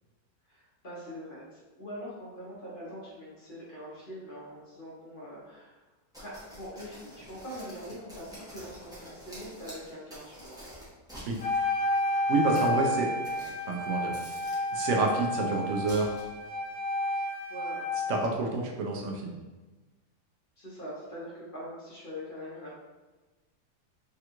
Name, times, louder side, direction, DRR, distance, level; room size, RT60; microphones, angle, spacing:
voice 1, 0.5-5.8 6.2-10.6 17.5-17.8 20.6-22.8, equal, 45° left, -7 dB, 0.7 m, -43 dB
sound 1, 6.1-11.6 12.3-12.7 13.2-13.8 14.1-15.1 15.9-16.4, equal, 5° right, 0.6 m, -47 dB
Wind instrument woodwind instrument, 11.4-18.4, left 1 dB, 65° left, 1.4 m, -31 dB
voice 2, 12.2-13.1 13.7-14.2 14.7-16.2 18.1-19.4, right 3 dB, 70° right, 0 dB, 0.8 m, -28 dB
3.4 x 2.3 x 2.9 m, 1.2 s
omnidirectional pair, 1.8 m